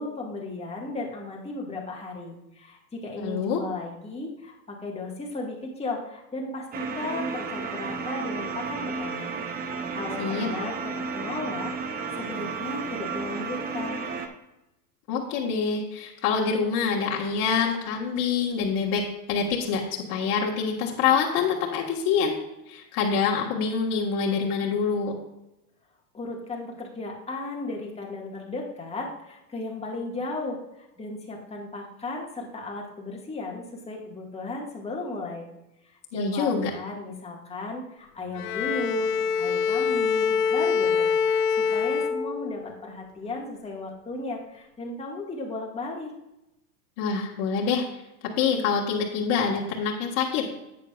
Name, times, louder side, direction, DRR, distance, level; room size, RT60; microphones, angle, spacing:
voice 1, 0.0-9.3 9.9-14.0 26.1-30.6 31.0-35.5 36.1-41.1 41.6-46.1, left 2 dB, 15° left, -1 dB, 1.8 m, -35 dB
voice 2, 3.2-3.6 10.2-10.5 15.1-22.4 22.7-25.1 36.1-36.7 47.0-47.8 48.4-50.5, left 6 dB, 50° left, -3 dB, 1.6 m, -26 dB
sound 1, 6.7-14.3, right 4 dB, 20° right, 0.8 m, -32 dB
Bowed string instrument, 38.3-42.8, left 6 dB, 80° left, 0.7 m, -25 dB
10.5 x 8.5 x 2.4 m, 0.92 s
hypercardioid pair, 115°, 46 cm